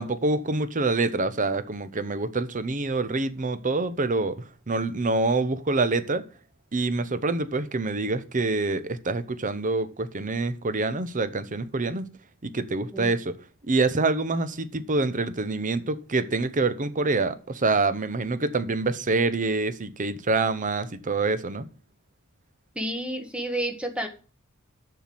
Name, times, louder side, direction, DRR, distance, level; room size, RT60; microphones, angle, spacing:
voice 1, 0.0-4.4 4.7-6.2 6.7-12.1 12.4-13.3 13.7-21.7, right 3 dB, 40° right, 0.8 m, -26 dB
voice 2, 22.7-24.1, right 1 dB, 5° right, 1.4 m, -30 dB
7.2 x 5.8 x 7.5 m
head